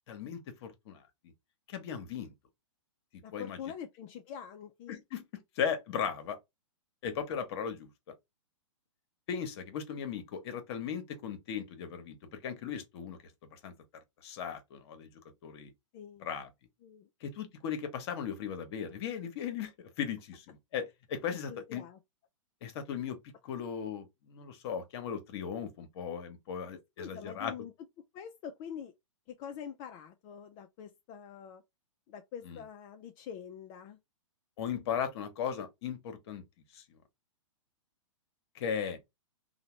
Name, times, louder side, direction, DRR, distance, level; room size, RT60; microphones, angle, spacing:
voice 1, 0.1-1.0 1.7-2.3 3.3-3.6 4.9-5.2 5.6-6.4 7.0-7.9 9.3-13.2 13.5-13.7 14.2-15.1 15.4-15.7 16.2-16.5 17.2-21.8 22.6-23.2 23.4-27.5 32.5-32.6 34.6-36.4 36.7-36.8 38.5-39.0, left 7 dB, 50° left, 0.9 m, -37 dB
voice 2, 3.2-5.0 15.9-16.3 16.8-17.1 21.3-22.0 26.6-27.7 28.1-28.9 29.3-31.6 32.1-34.0, left 8 dB, 30° left, 0.3 m, -45 dB
2.8 x 2.1 x 3.0 m
hypercardioid pair, 120°, 17 cm